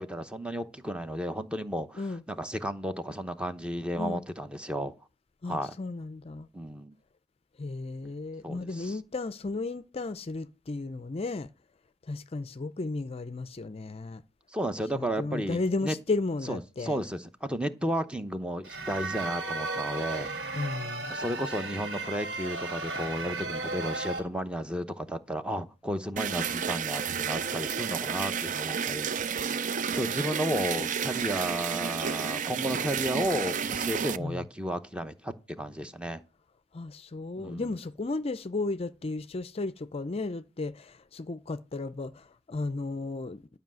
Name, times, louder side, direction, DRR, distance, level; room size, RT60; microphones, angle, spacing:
voice 1, 0.0-2.0 2.3-4.9 5.5-5.7 6.5-6.9 8.4-9.0 14.5-15.9 16.5-20.3 21.1-29.1 29.6-36.2 37.4-37.7, equal, 5° right, 0.8 m, -33 dB
voice 2, 5.4-6.5 7.6-11.5 12.1-14.2 14.9-17.0 20.5-21.1 34.2-34.4 36.7-43.6, left 3 dB, 35° left, 0.5 m, -34 dB
sound 1, 18.6-24.2, right 3 dB, 70° right, 4.7 m, -35 dB
sound 2, 26.2-34.2, right 7 dB, 45° right, 0.5 m, -31 dB
12.0 x 5.5 x 7.5 m
head